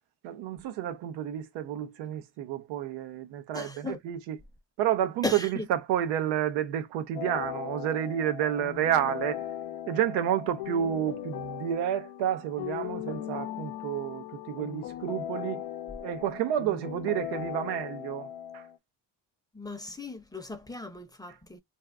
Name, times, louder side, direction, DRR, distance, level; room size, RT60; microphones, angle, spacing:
voice 1, 0.2-4.4 4.8-9.4 9.9-15.6 16.0-18.6, right 10 dB, 90° right, 0.7 m, -30 dB
voice 2, 3.5-4.0 5.2-5.6 19.5-21.6, left 3 dB, 10° left, 0.7 m, -36 dB
sound 1, 7.1-18.8, left 11 dB, 80° left, 0.7 m, -38 dB
2.6 x 2.3 x 3.4 m
supercardioid pair, 75°, 41 cm